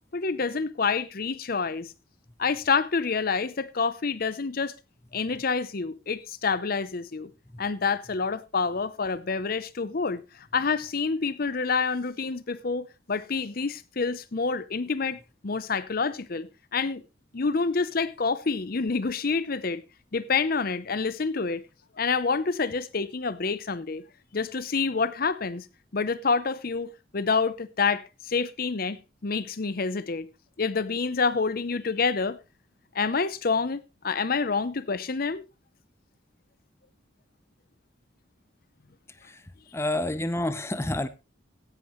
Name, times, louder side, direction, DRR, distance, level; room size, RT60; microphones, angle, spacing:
voice 1, 0.1-1.9 2.4-4.7 5.1-7.3 7.6-17.0 17.3-19.8 20.1-21.7 22.0-24.0 24.3-25.7 25.9-30.3 30.6-32.4 32.9-35.4, left 4 dB, 50° left, 0.7 m, -28 dB
voice 2, 39.7-41.1, left 1 dB, 15° left, 0.7 m, -29 dB
16.0 x 11.0 x 3.1 m
head